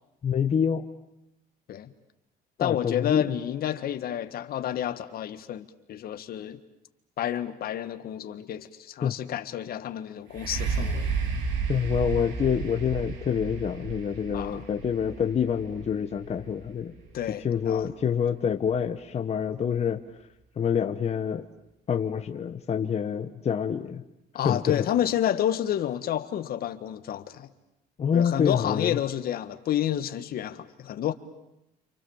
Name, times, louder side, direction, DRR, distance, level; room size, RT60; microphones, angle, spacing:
voice 1, 0.2-0.8 2.6-3.3 9.0-9.1 11.7-16.9 17.4-20.0 20.6-21.5 21.9-24.0 24.4-24.9 28.0-29.0, left 7 dB, 35° left, 1.3 m, -27 dB
voice 2, 2.6-6.6 7.2-11.1 14.3-14.6 17.1-17.9 24.3-27.5 28.1-31.1, left 11 dB, 55° left, 1.7 m, -30 dB
sound 1, 10.3-18.1 18.7-18.8, right 5 dB, 85° right, 3.4 m, -33 dB
29.5 x 27.5 x 7.3 m
cardioid pair, 110°, 18 cm